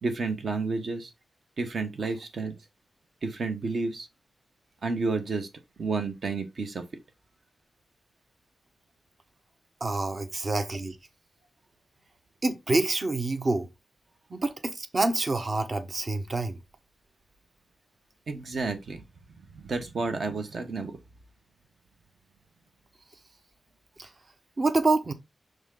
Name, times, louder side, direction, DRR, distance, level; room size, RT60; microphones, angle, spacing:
voice 1, 0.0-1.1 1.6-2.6 3.2-4.1 4.8-5.5 5.8-6.8 18.3-19.0 19.5-21.0, right 3 dB, 55° right, 1.3 m, -31 dB
voice 2, 9.8-11.0 12.4-13.7 14.3-16.6 24.0-24.1 24.6-25.1, right 2 dB, 35° right, 0.9 m, -27 dB
6.4 x 4.1 x 3.8 m
wide cardioid pair, 150°, 0 cm